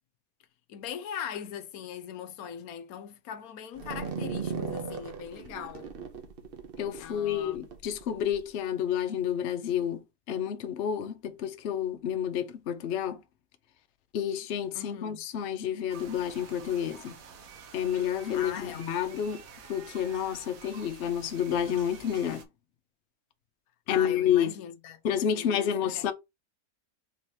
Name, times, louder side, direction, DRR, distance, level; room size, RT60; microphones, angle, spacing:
voice 1, 0.7-5.9 7.0-7.6 14.7-15.2 18.3-19.1 23.9-25.0 25.3-26.1, left 8 dB, 80° left, 1.1 m, -40 dB
sound 1, 3.8-8.4, right 5 dB, 50° right, 0.8 m, -38 dB
voice 2, 6.8-10.0 10.3-13.2 14.1-17.2 17.7-19.4 19.7-22.4 23.9-24.5 25.0-26.1, left 9 dB, 60° left, 0.8 m, -29 dB
sound 2, 15.9-22.4, right 6 dB, 70° right, 1.3 m, -49 dB
3.9 x 2.9 x 4.6 m
omnidirectional pair, 1.5 m